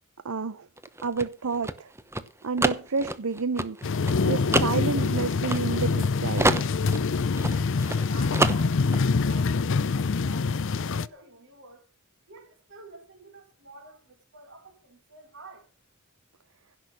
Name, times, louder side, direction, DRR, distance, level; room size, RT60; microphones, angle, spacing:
voice 1, 0.2-0.7 1.0-1.9 2.4-3.8 4.2-6.5, right 4 dB, 75° right, 0.7 m, -29 dB
sound 1, 0.8-6.1 6.4-8.0 8.3-9.0, right 2 dB, 10° right, 0.9 m, -27 dB
sound 2, 3.8-11.1, left 4 dB, 60° left, 0.6 m, -25 dB
voice 2, 7.8-11.9 12.3-15.7, right 2 dB, 60° right, 4.8 m, -48 dB
16.0 x 6.2 x 7.7 m
head